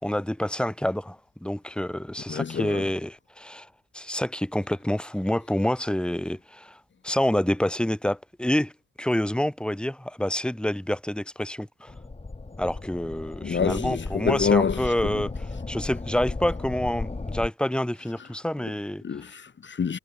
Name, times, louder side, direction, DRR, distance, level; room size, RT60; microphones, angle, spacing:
voice 1, 0.0-3.7 3.9-6.8 7.0-8.7 9.0-11.9 12.6-19.0, left 1 dB, 5° left, 2.9 m, -27 dB
voice 2, 2.3-2.8 13.4-14.8 19.0-20.0, left 6 dB, 40° left, 2.0 m, -26 dB
sound 1, 11.9-17.5, left 3 dB, 20° left, 4.1 m, -35 dB
cardioid pair, 90°, 30 cm